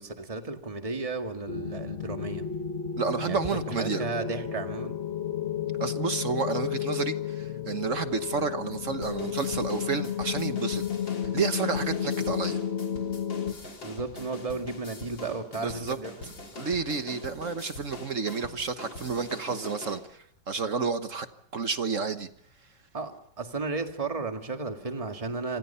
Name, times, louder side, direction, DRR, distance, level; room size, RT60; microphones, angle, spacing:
voice 1, 0.0-2.5 3.2-5.0 13.8-16.3 22.9-23.1 23.4-25.6, right 3 dB, 20° right, 5 dB, 1.9 m, -34 dB
sound 1, 1.5-13.5, left 8 dB, 40° left, 1.3 m, -32 dB
voice 2, 3.0-4.0 5.8-12.6 15.6-16.0 16.5-20.2 20.5-21.3 21.5-22.3, right 5 dB, 45° right, 9 dB, 1.4 m, -30 dB
sound 2, 9.0-20.0, left 2 dB, 85° left, 4.3 m, -43 dB
27.5 x 26.5 x 5.6 m, 0.70 s
omnidirectional pair, 2.0 m